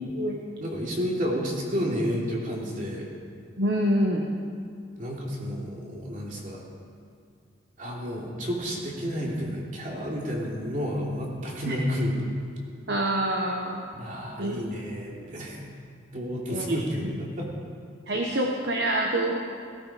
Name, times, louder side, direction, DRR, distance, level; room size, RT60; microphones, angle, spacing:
voice 1, 0.6-3.1 5.0-6.6 7.8-12.2 13.9-15.6 16.1-17.5, equal, 40° right, -3 dB, 3.1 m, -31 dB
voice 2, 3.6-4.3 11.7-11.8 12.9-13.8 14.4-14.6 16.5-17.1 18.1-19.4, right 1 dB, 60° right, 0 dB, 1.2 m, -26 dB
17.5 x 16.5 x 5.1 m, 2.3 s
head